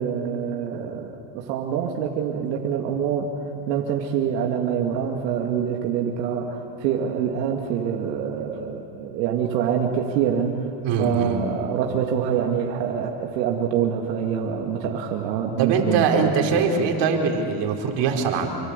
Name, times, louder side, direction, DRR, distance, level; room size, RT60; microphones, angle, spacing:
voice 1, 0.0-3.3 3.7-10.6 10.9-16.5 16.8-16.9, right 8 dB, 90° right, 1 dB, 2.4 m, -25 dB
voice 2, 10.8-11.4 15.6-18.5, right 5 dB, 55° right, 1 dB, 4.7 m, -22 dB
27.5 x 24.5 x 8.3 m, 2.8 s
supercardioid pair, 115°, 49 cm